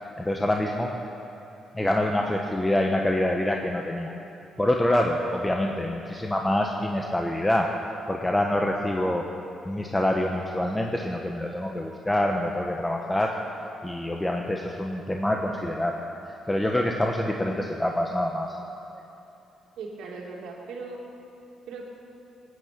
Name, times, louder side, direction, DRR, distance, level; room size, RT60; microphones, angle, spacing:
voice 1, 0.2-0.9 1.7-4.1 4.6-7.7 8.1-9.2 9.6-13.3 13.8-16.0 16.5-18.5 18.9-19.0, left 1 dB, 10° left, 1 dB, 1.1 m, -26 dB
voice 2, 5.2-5.7 19.8-21.0 21.7-21.9, right 4 dB, 80° right, -1 dB, 2.5 m, -39 dB
19.0 x 9.6 x 6.9 m, 2.8 s
cardioid pair, 90°, 0 cm